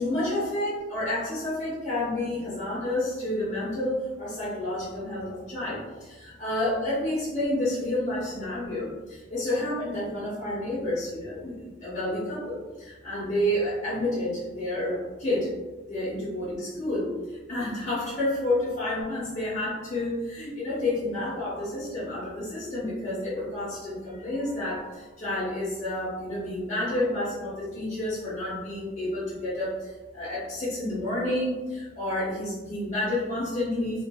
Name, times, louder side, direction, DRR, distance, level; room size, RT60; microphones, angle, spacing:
voice 1, 0.0-15.5 15.9-34.0, left 1 dB, 40° left, -9 dB, 0.7 m, -30 dB
2.7 x 2.3 x 2.3 m, 1.3 s
head